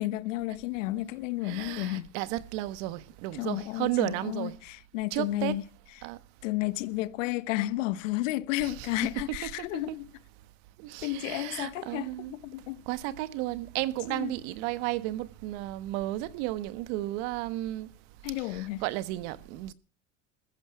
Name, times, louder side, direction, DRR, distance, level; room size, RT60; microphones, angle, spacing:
voice 1, 0.0-2.1 3.3-5.6 6.0-6.1 6.4-10.1 11.0-12.8 14.1-14.3 18.2-18.8, left 16 dB, 80° left, 1.3 m, -32 dB
voice 2, 1.5-4.5 5.1-5.5 6.0-6.2 8.6-8.7 9.4-9.8 10.8-12.3 12.9-17.9 18.5-19.7, right 16 dB, 65° right, 1.5 m, -33 dB
15.5 x 13.5 x 6.0 m
supercardioid pair, 120°, 37 cm